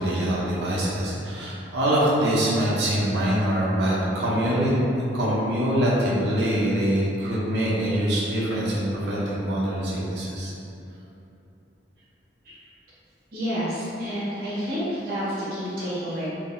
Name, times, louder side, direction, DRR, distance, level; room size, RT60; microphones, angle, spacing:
voice 1, 0.0-4.7 5.1-10.5, right 1 dB, 70° right, -7 dB, 0.8 m, -24 dB
voice 2, 13.3-16.3, equal, 55° right, -10 dB, 1.3 m, -29 dB
3.7 x 2.7 x 2.6 m, 2.8 s
head